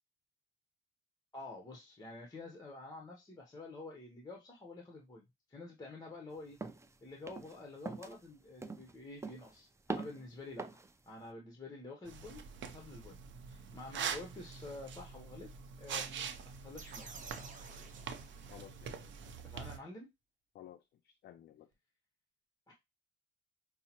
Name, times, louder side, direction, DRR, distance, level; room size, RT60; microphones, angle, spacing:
voice 1, 1.3-6.6 7.0-10.7 11.1-13.2 13.5-15.5 15.8-17.1 19.4-20.1 22.7-22.8, left 2 dB, 20° left, 1 dB, 0.8 m, -49 dB
sound 1, 6.6-6.9 7.3-7.6 7.9-8.2 8.6-8.9 9.2-9.6 9.9-10.2 10.6-10.9, right 3 dB, 15° right, 0.4 m, -42 dB
sound 2, 12.1-19.8, right 7 dB, 70° right, 0.6 m, -44 dB
sound 3, 16.8-18.9, right 4 dB, 40° right, 0.8 m, -52 dB
voice 2, 18.5-19.3 20.5-21.7, left 11 dB, 55° left, 8 dB, 0.4 m, -56 dB
5.4 x 2.0 x 2.8 m, 0.21 s
cardioid pair, 90°, 20 cm